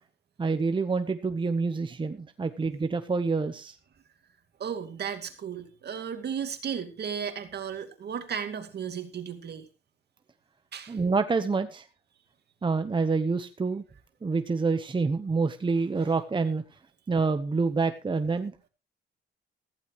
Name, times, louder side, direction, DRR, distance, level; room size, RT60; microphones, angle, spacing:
voice 1, 0.4-3.8 10.9-11.9 12.6-13.8 14.2-16.6 17.1-18.7, right 4 dB, 25° right, 9 dB, 1.0 m, -27 dB
voice 2, 4.6-9.7 10.7-11.0, right 7 dB, 55° right, 8 dB, 2.4 m, -35 dB
15.0 x 15.0 x 3.1 m, 0.31 s
cardioid pair, 90°, 20 cm